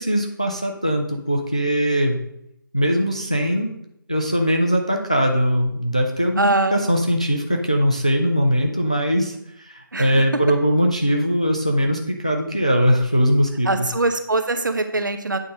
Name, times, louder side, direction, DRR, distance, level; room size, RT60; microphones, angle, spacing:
voice 1, 0.0-2.2 2.7-3.7 4.1-13.9, equal, 20° left, 2 dB, 0.4 m, -21 dB
voice 2, 6.4-6.8 9.9-10.2 13.7-15.4, right 2 dB, 60° right, 8 dB, 0.9 m, -22 dB
8.6 x 3.8 x 5.2 m, 0.76 s
figure-of-eight pair, 180°, 12 cm